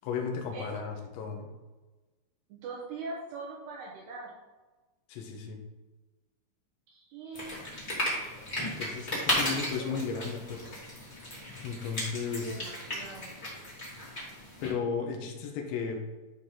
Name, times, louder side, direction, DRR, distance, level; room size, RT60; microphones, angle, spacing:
voice 1, 0.0-1.5 5.1-5.6 8.6-10.7 11.6-12.6 14.6-16.0, left 5 dB, 75° left, 2 dB, 3.0 m, -35 dB
voice 2, 2.5-4.3 6.9-7.6 9.1-10.0 12.4-13.3, right 3 dB, 75° right, -4 dB, 2.6 m, -42 dB
sound 1, 7.3-14.7, left 1 dB, 40° left, 0.6 m, -35 dB
12.0 x 4.1 x 3.7 m, 1.2 s
omnidirectional pair, 6.0 m